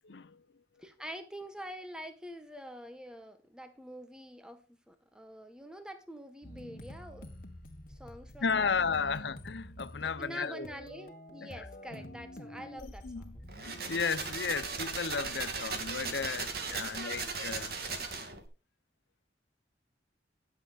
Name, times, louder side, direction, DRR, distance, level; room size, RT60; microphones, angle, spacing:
voice 1, 0.0-0.4 8.4-10.7 11.4-11.7 12.8-17.7, left 5 dB, 70° left, 0.7 m, -34 dB
voice 2, 0.8-7.3 7.9-9.3 10.0-13.5 16.7-16.9, equal, 5° right, 1.4 m, -46 dB
sound 1, 6.4-14.0, left 1 dB, 50° left, 1.6 m, -47 dB
sound 2, 13.5-18.5, right 4 dB, 55° right, 2.5 m, -37 dB
21.0 x 7.6 x 2.4 m
head